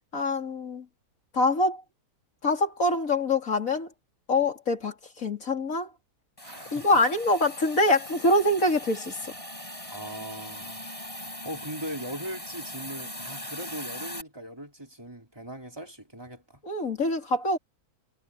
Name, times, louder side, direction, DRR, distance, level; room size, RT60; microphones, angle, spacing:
voice 1, 0.1-0.9 1.3-1.8 2.4-3.9 4.3-5.9 6.7-9.3 16.6-17.6, left 2 dB, 60° left, 3.6 m, -25 dB
Hiss, 6.4-14.2, left 1 dB, 20° left, 7.2 m, -40 dB
voice 2, 6.4-6.9 9.9-10.8 11.2-16.6, right 1 dB, 15° right, 3.6 m, -40 dB
omnidirectional pair, 1.6 m